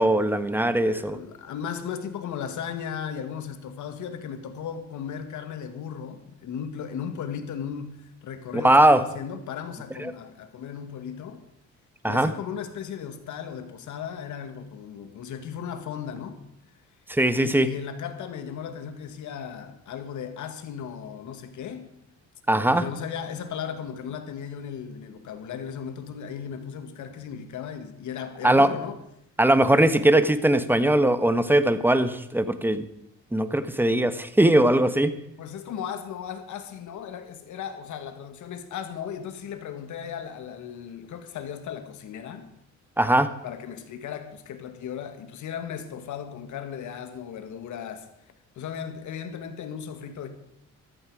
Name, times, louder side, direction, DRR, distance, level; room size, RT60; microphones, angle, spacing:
voice 1, 0.0-1.2 8.5-9.0 10.0-10.1 12.0-12.3 17.1-17.7 22.5-22.8 28.4-28.7 29.4-32.8 33.3-35.1 43.0-43.3, right 1 dB, 5° right, 1.2 m, -20 dB
voice 2, 0.6-11.4 12.1-16.4 17.4-21.9 22.5-29.0 35.4-42.5 43.4-48.1 48.6-50.3, left 8 dB, 75° left, 1.8 m, -36 dB
13.5 x 13.5 x 4.9 m
cardioid pair, 90°, 30 cm